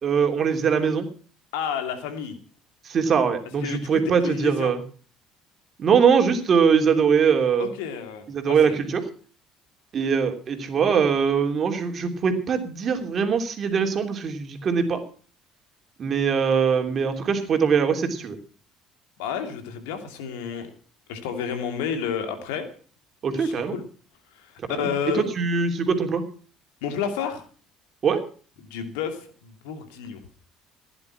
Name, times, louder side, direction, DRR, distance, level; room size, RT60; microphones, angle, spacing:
voice 1, 0.0-1.1 2.8-4.8 5.8-7.7 8.3-9.1 9.9-15.0 16.0-18.4 23.2-23.7 24.7-24.9 25.1-26.2 28.0-28.2, right 6 dB, 45° right, 6 dB, 3.2 m, -22 dB
voice 2, 1.5-2.3 3.6-4.7 7.6-8.8 19.2-20.7 21.1-22.7 23.3-23.8 24.3-25.2 26.8-27.5 28.6-30.2, left 7 dB, 75° left, 7 dB, 2.8 m, -31 dB
16.0 x 11.0 x 6.0 m, 0.41 s
hypercardioid pair, 55°, 0 cm